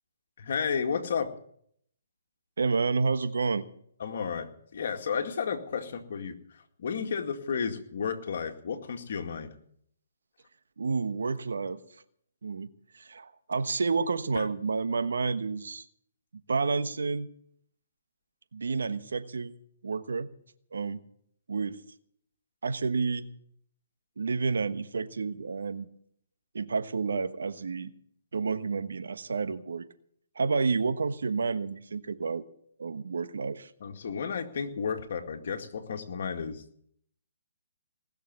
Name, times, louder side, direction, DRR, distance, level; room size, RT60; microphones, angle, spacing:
voice 1, 0.4-1.3 4.0-9.5 14.4-14.5 33.8-36.6, left 6 dB, 60° left, 5 dB, 2.1 m, -32 dB
voice 2, 2.6-3.6 10.8-11.8 12.4-12.7 12.9-15.8 16.5-17.3 18.5-19.5 19.8-20.3 20.7-21.0 21.5-21.8 22.6-23.3 24.2-25.9 26.5-27.9 28.3-29.8 30.3-32.4 32.8-33.7, right 4 dB, 80° right, 11 dB, 1.2 m, -30 dB
19.5 x 6.8 x 9.6 m, 0.67 s
hypercardioid pair, 150°, 0 cm